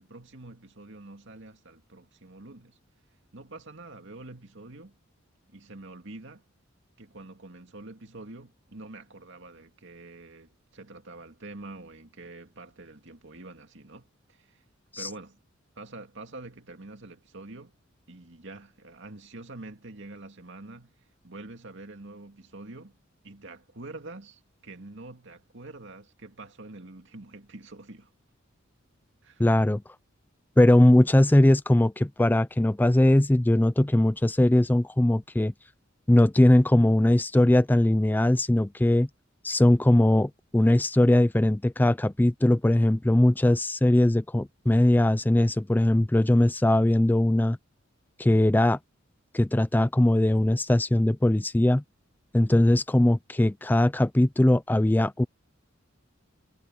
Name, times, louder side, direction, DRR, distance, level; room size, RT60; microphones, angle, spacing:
voice 1, 0.0-2.8 3.3-4.9 5.5-6.4 7.0-14.6 15.0-15.4 15.8-17.8 18.1-21.0 21.2-22.9 23.2-28.1 29.2-29.4, right 2 dB, 65° right, 2.5 m, -45 dB
voice 2, 29.4-29.8 30.6-35.5 36.1-39.1 39.4-47.6 48.2-48.8 49.3-51.8 52.3-55.2, left 1 dB, 10° left, 0.4 m, -20 dB
head